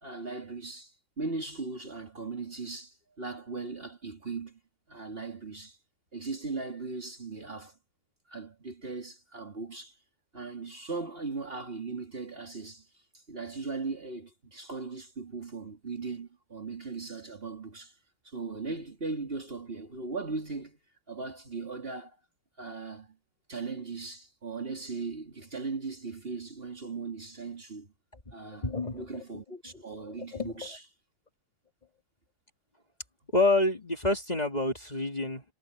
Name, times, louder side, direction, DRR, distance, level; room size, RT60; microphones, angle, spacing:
voice 1, 0.0-0.9 1.2-4.6 4.9-5.8 6.1-7.8 8.3-9.9 10.3-12.9 13.3-17.9 18.2-20.8 21.1-22.2 22.6-23.2 23.5-27.9 28.3-30.8, right 4 dB, 30° right, 2.8 m, -38 dB
voice 2, 28.6-29.2 30.0-30.7 33.3-35.4, left 2 dB, 20° left, 2.2 m, -28 dB
omnidirectional pair, 2.2 m